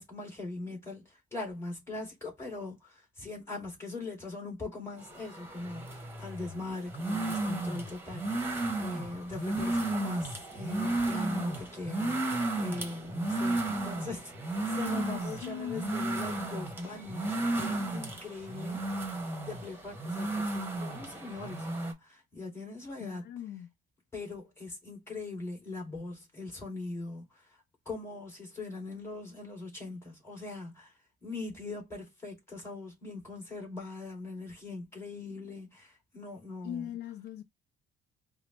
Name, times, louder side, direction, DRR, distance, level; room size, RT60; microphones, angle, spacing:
voice 1, 0.0-8.3 8.8-18.9 19.4-23.2 24.1-27.2 27.9-30.9 31.2-36.9, left 2 dB, 15° left, 2.3 m, -41 dB
sound 1, 5.0-21.9, right 2 dB, 15° right, 1.1 m, -34 dB
voice 2, 14.9-16.1 23.0-23.7 36.6-37.4, left 10 dB, 70° left, 0.4 m, -40 dB
4.9 x 2.0 x 3.1 m
cardioid pair, 110°, 17 cm